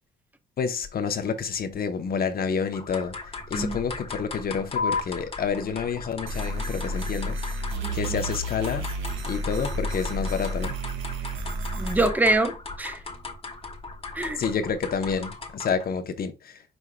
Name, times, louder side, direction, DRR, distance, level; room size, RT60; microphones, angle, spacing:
voice 1, 0.6-7.6 7.9-8.9 9.3-10.7 14.3-16.6, left 6 dB, 50° left, 0.9 m, -29 dB
sound 1, 2.7-15.9, left 3 dB, 30° left, 1.2 m, -38 dB
sound 2, 4.8-11.7, left 4 dB, 75° left, 0.7 m, -38 dB
sound 3, 6.3-12.1, right 1 dB, 85° right, 1.3 m, -31 dB
voice 2, 7.8-8.2 11.7-13.0 14.1-14.4, right 2 dB, 10° right, 0.8 m, -25 dB
5.2 x 4.5 x 2.2 m
cardioid pair, 90°, 20 cm